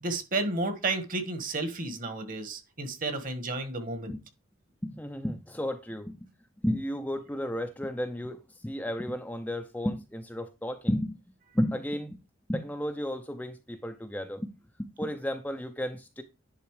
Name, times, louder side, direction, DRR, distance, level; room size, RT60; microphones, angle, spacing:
voice 1, 0.0-4.1, right 2 dB, 40° right, 1.5 m, -32 dB
voice 2, 4.8-6.3 6.6-11.2 11.5-12.2 12.5-14.5 14.8-16.2, equal, 5° left, 0.6 m, -33 dB
10.5 x 4.0 x 4.8 m
head